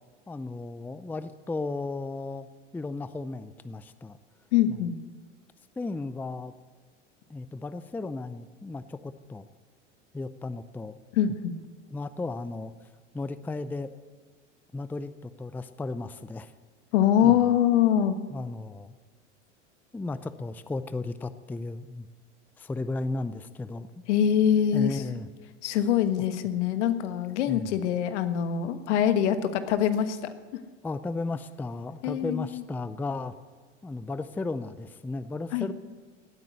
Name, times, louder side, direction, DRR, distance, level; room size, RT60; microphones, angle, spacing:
voice 1, 0.3-2.5 2.7-4.2 4.7-4.8 5.8-6.5 7.3-9.5 10.1-11.0 11.9-12.7 13.1-13.9 14.7-16.5 17.2-17.4 18.3-18.9 19.9-22.1 22.6-24.0 24.7-25.3 27.5-27.8 30.8-33.4 33.8-35.7, left 3 dB, 5° left, 13 dB, 0.5 m, -35 dB
voice 2, 4.5-4.9 11.1-11.5 16.9-18.2 24.1-25.0 25.6-30.2 32.0-32.6 35.5-35.7, left 9 dB, 75° left, 10 dB, 1.4 m, -24 dB
18.0 x 9.2 x 8.1 m, 1.4 s
hypercardioid pair, 95°, 36 cm